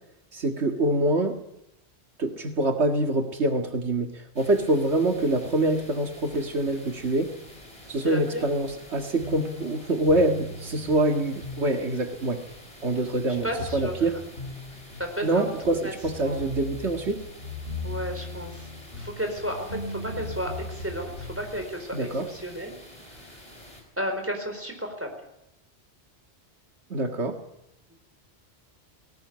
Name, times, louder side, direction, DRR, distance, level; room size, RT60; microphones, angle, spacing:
voice 1, 0.3-1.4 2.2-7.3 7.9-12.4 12.8-14.1 15.2-17.3 21.9-22.3 26.9-27.4, right 1 dB, 80° right, 4 dB, 2.1 m, -25 dB
sound 1, 4.3-23.8, left 1 dB, 30° left, 5.3 m, -48 dB
voice 2, 8.0-8.4 13.4-13.9 15.0-15.4 15.8-15.9 16.2-16.4 17.8-18.7 19.0-22.7 23.2-23.4 24.0-25.1, equal, 10° right, 4 dB, 4.6 m, -32 dB
sound 2, 9.2-21.6, left 2 dB, 80° left, 8.1 m, -39 dB
19.5 x 18.5 x 9.6 m, 0.83 s
omnidirectional pair, 1.1 m